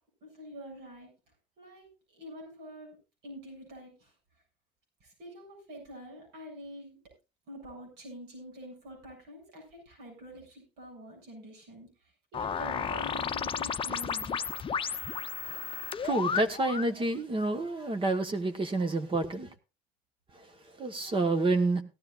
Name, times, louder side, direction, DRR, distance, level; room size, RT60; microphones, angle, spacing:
voice 1, 0.2-1.1 1.6-3.0 3.2-4.1 5.0-7.0 7.5-14.4, equal, 80° right, 7.5 m, -47 dB
sound 1, 12.3-16.9, left 7 dB, 30° left, 0.7 m, -33 dB
voice 2, 16.0-19.5 20.8-21.8, right 2 dB, 30° right, 1.5 m, -28 dB
17.5 x 12.5 x 2.5 m
cardioid pair, 110°, 17 cm